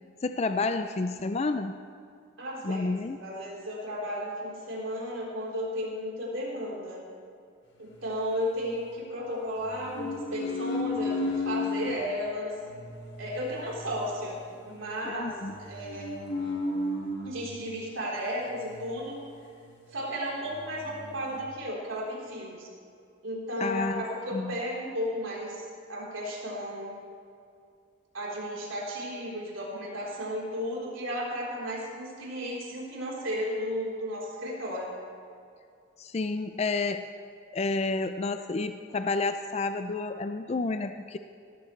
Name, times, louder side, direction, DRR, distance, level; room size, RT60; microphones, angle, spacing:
voice 1, 0.2-1.8 2.6-3.2 15.1-15.5 23.6-24.0 24.3-24.5 36.0-37.0 37.5-41.2, left 3 dB, 30° left, 8 dB, 0.4 m, -30 dB
voice 2, 2.4-7.0 7.8-12.6 13.2-14.4 14.6-16.2 17.2-19.2 19.9-22.7 23.2-27.0 28.1-34.9, equal, 85° right, -5 dB, 3.9 m, -34 dB
sound 1, 7.8-9.0 9.6-12.0 12.6-17.6 18.5-19.7 20.0-20.1 20.4-21.4, left 2 dB, 65° left, 2.0 m, -35 dB
18.0 x 14.0 x 3.3 m, 2.4 s
head